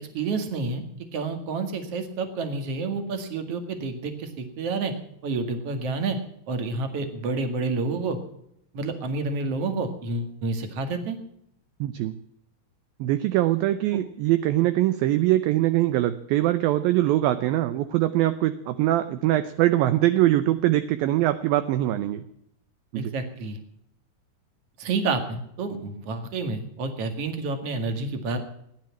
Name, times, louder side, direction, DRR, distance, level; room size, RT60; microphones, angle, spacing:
voice 1, 0.1-0.8 1.1-4.9 5.2-6.2 6.5-8.2 8.7-11.2 22.9-23.6 24.8-28.4, right 3 dB, 45° right, 7 dB, 2.4 m, -29 dB
voice 2, 11.8-12.2 13.0-22.2 22.9-23.1, right 14 dB, 80° right, 11 dB, 2.2 m, -22 dB
16.5 x 10.5 x 7.2 m, 0.75 s
omnidirectional pair, 4.9 m